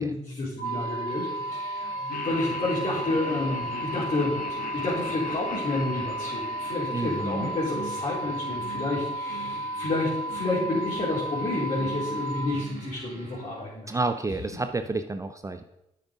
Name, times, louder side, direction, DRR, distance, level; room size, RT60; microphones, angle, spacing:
voice 1, 0.0-13.9, left 2 dB, 45° left, -8 dB, 3.7 m, -30 dB
sound 1, 0.6-12.5, right 1 dB, 80° left, 3.2 m, -33 dB
sound 2, 0.6-13.8, right 3 dB, 85° right, 2.2 m, -44 dB
Laughter, 2.1-8.3, left 6 dB, 65° left, 1.0 m, -40 dB
voice 2, 6.9-7.5 13.9-15.6, right 3 dB, 20° right, 9 dB, 0.6 m, -30 dB
7.9 x 6.4 x 5.0 m, 0.87 s
hypercardioid pair, 50°, 15 cm